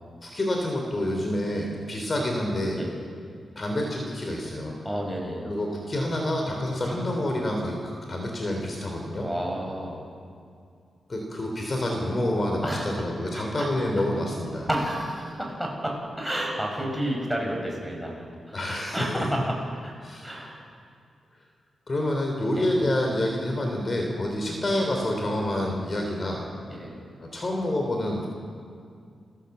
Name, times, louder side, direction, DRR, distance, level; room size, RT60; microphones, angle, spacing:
voice 1, 0.2-2.8 3.6-4.8 5.5-7.8 8.1-9.3 11.1-14.7 18.5-19.2 20.0-20.4 21.9-26.5 27.2-28.3, left 1 dB, 35° left, 1 dB, 3.5 m, -28 dB
voice 2, 4.8-5.5 9.2-10.0 12.6-13.1 13.3-13.7 14.7-18.6 18.9-19.6 19.8-19.9 20.2-20.6 22.5-22.7 26.7-27.0, right 1 dB, ahead, -1 dB, 6.0 m, -31 dB
29.5 x 13.0 x 8.0 m, 2.3 s
wide cardioid pair, 115°, 0 cm